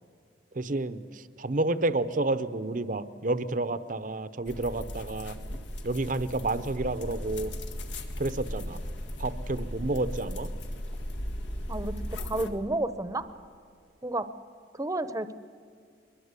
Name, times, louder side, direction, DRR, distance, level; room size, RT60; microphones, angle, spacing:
voice 1, 0.5-5.4 5.8-7.5 8.2-8.8 9.2-10.5, right 2 dB, 45° right, 14 dB, 0.8 m, -30 dB
sound 1, 4.5-12.5, equal, 80° left, 2.0 m, -37 dB
voice 2, 12.2-13.2 14.0-14.3 14.7-15.3, right 2 dB, 20° right, 13 dB, 0.9 m, -30 dB
22.5 x 22.0 x 8.3 m, 2.2 s
head